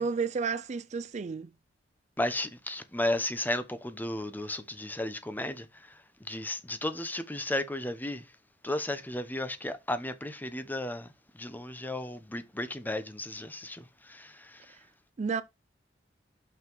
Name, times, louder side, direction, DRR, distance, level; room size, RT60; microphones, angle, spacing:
voice 1, 0.0-1.5 15.2-15.4, right 5 dB, 40° right, 0.4 m, -31 dB
voice 2, 2.2-5.6 6.3-8.2 8.6-11.1 11.4-14.6, left 1 dB, 10° left, 0.8 m, -34 dB
6.1 x 5.6 x 4.5 m
head